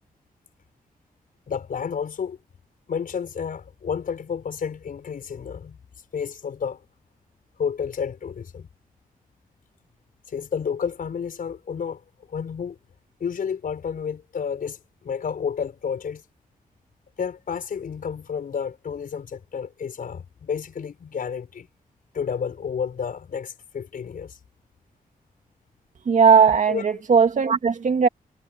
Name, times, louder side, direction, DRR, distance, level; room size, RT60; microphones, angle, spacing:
voice 1, 1.5-2.4 2.9-5.8 6.1-6.8 7.6-8.7 10.3-12.0 12.3-12.8 13.2-16.2 17.2-21.7 22.1-24.4 26.7-26.8, left 7 dB, 65° left, 5.1 m, -30 dB
voice 2, 26.1-28.1, right 6 dB, 55° right, 2.3 m, -17 dB
wide cardioid pair, 150°, 15 cm